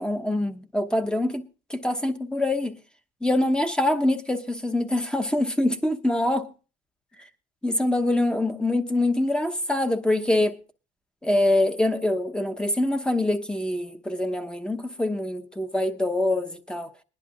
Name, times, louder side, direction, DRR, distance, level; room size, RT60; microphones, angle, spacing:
voice 1, 0.0-1.4 1.7-2.8 3.2-6.5 7.6-10.6 11.2-16.9, left 1 dB, 5° left, 0.9 m, -24 dB
21.5 x 11.0 x 2.4 m
cardioid pair, 110°, 17 cm